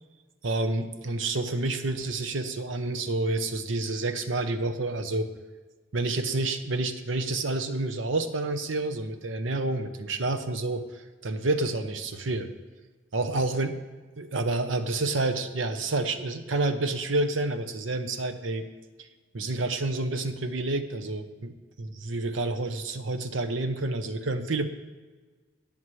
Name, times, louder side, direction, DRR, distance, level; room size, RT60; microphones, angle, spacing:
voice 1, 0.4-5.3 5.9-12.5 13.1-13.7 14.2-18.6 19.3-24.7, right 2 dB, 75° right, 9 dB, 0.8 m, -29 dB
18.5 x 7.3 x 3.2 m, 1.3 s
head